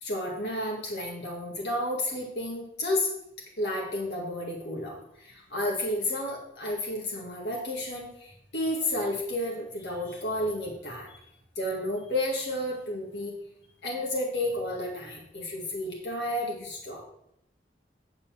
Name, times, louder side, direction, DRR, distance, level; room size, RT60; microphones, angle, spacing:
voice 1, 0.0-3.1 3.6-11.2 11.6-13.3 13.8-17.0, left 1 dB, 70° left, -1 dB, 1.9 m, -31 dB
9.8 x 4.1 x 7.2 m, 0.76 s
head